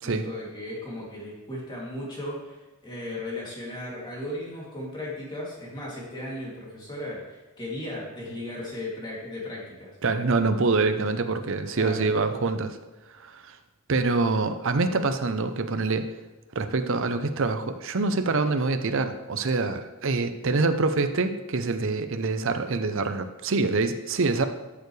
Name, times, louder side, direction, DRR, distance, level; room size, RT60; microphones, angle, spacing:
voice 1, 0.0-9.9 11.7-12.0, left 1 dB, 20° left, -4 dB, 2.7 m, -36 dB
voice 2, 10.0-12.8 13.2-13.6 13.9-16.1 16.5-24.5, right 3 dB, 60° right, 9 dB, 0.7 m, -25 dB
13.0 x 6.9 x 3.3 m, 1.2 s
head